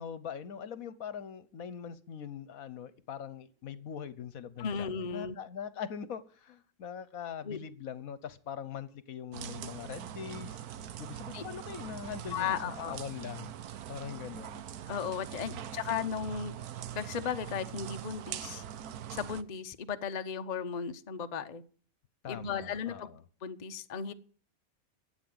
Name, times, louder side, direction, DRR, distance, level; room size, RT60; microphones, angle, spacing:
voice 1, 0.0-10.6 11.0-13.5 13.9-14.7 15.5-15.8 22.2-23.2, left 8 dB, 70° left, 1.4 m, -42 dB
voice 2, 4.6-5.3 7.4-7.6 11.3-11.4 12.3-13.0 14.9-16.6 16.9-18.6 19.1-21.6 22.3-23.1 23.4-24.1, left 7 dB, 35° left, 0.7 m, -35 dB
sound 1, 9.3-19.4, right 10 dB, 85° right, 1.3 m, -42 dB
13.0 x 8.1 x 7.8 m
omnidirectional pair, 1.5 m